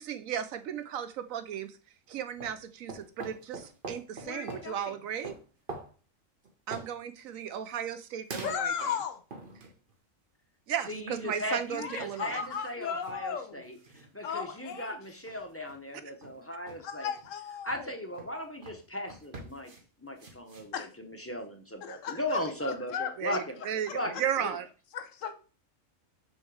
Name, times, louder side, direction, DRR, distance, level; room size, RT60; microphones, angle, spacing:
voice 1, 0.0-1.7 2.1-5.3 6.7-8.9 10.7-12.4 23.2-23.9 24.2-24.6, right 9 dB, 80° right, 1.1 m, -35 dB
sound 1, 2.2-2.6 2.9-4.7 5.2-5.9 6.4-6.9 8.3-8.9 9.3-9.9 11.5-12.7 13.0-13.2 13.5-14.1 14.7-14.8 15.3-15.8 16.2-16.4 16.7-16.8 17.2-17.3 17.7-17.8 18.1-18.3 18.6-18.8 19.1-19.8 20.2-20.7, right 3 dB, 40° right, 1.2 m, -44 dB
voice 2, 4.2-5.0 8.4-9.2 11.8-13.6 14.2-15.0 16.8-17.9 20.7-20.9 21.8-23.4 23.9-24.0 24.9-25.3, left 7 dB, 70° left, 1.1 m, -36 dB
voice 3, 10.8-17.1 17.6-19.7 20.0-24.6, left 1 dB, 15° left, 0.5 m, -37 dB
6.4 x 3.2 x 4.7 m
omnidirectional pair, 1.4 m